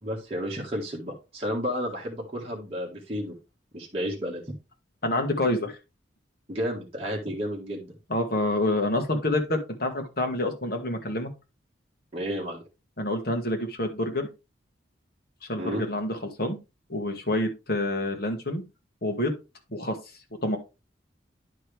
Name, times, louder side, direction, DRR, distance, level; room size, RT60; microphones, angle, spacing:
voice 1, 0.0-3.3 3.7-4.4 6.5-8.0 12.1-12.6 15.6-15.8, equal, 30° right, -3 dB, 1.7 m, -32 dB
voice 2, 5.0-5.7 8.1-11.3 13.0-14.3 15.5-16.6 16.9-18.6 19.0-19.3 19.7-20.0 20.4-20.6, left 1 dB, 50° left, 4 dB, 1.6 m, -27 dB
10.0 x 4.6 x 3.4 m, 0.26 s
head